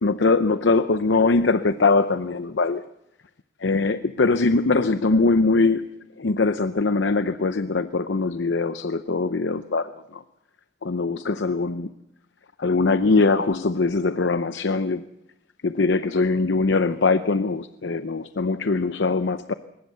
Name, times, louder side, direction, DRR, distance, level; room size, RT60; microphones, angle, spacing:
voice 1, 0.0-2.9 3.6-5.9 6.2-10.2 10.8-11.9 12.6-15.0 15.6-19.5, left 3 dB, 75° left, 11 dB, 0.7 m, -22 dB
22.0 x 19.5 x 6.8 m, 0.84 s
head